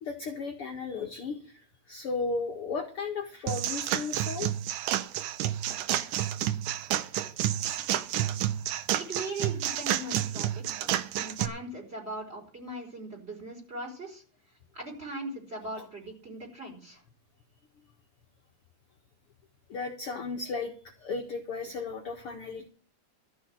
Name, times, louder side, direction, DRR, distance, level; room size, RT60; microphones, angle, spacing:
voice 1, 0.0-4.5 10.8-10.9 15.8-15.9 19.7-22.7, left 4 dB, 50° left, 1 dB, 2.0 m, -35 dB
sound 1, 3.5-11.5, right 12 dB, 75° right, 2.3 m, -30 dB
voice 2, 9.0-10.8 11.1-14.2 14.7-17.0, right 2 dB, 20° right, 0 dB, 5.0 m, -39 dB
13.5 x 6.2 x 8.4 m, 0.42 s
omnidirectional pair, 3.8 m